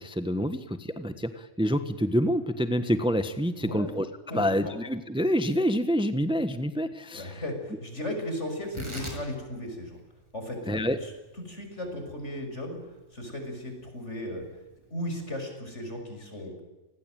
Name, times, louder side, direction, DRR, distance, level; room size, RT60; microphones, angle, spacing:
voice 1, 0.0-4.1 4.3-7.4 10.6-11.0, equal, 5° right, 10 dB, 1.3 m, -27 dB
voice 2, 3.6-3.9 4.3-4.7 7.1-10.0 10.3-11.1 11.5-12.8 13.1-14.4 14.9-16.6, left 1 dB, 65° left, 5 dB, 6.8 m, -36 dB
Tearing, 8.6-15.3, right 1 dB, 20° right, 6.9 m, -46 dB
28.5 x 20.5 x 9.2 m, 1.1 s
omnidirectional pair, 1.3 m